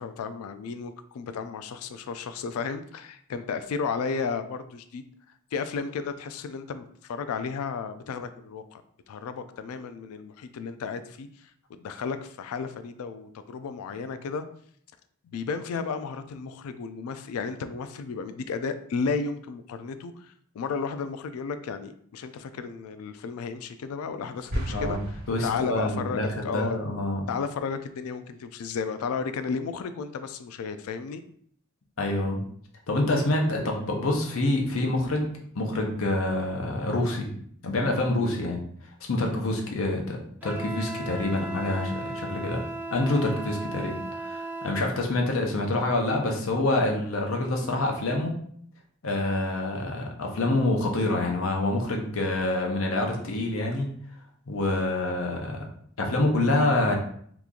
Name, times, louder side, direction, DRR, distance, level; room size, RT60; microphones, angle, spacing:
voice 1, 0.0-5.0 5.5-8.8 9.1-11.3 11.7-14.4 15.2-25.2 25.4-26.8 27.3-31.2, left 5 dB, 90° left, 10 dB, 0.3 m, -33 dB
sound 1, 24.5-26.1, right 1 dB, 45° right, 1.3 m, -34 dB
voice 2, 24.7-25.0 25.3-27.2 32.0-32.4 32.9-35.3 35.5-37.3 37.6-38.6 39.1-42.6 42.9-48.3 49.0-53.9 54.5-55.6 56.0-57.0, left 2 dB, 70° left, 1 dB, 0.7 m, -26 dB
Wind instrument woodwind instrument, 40.4-44.9, right 2 dB, 10° right, 0.4 m, -36 dB
2.9 x 2.4 x 3.6 m, 0.62 s
head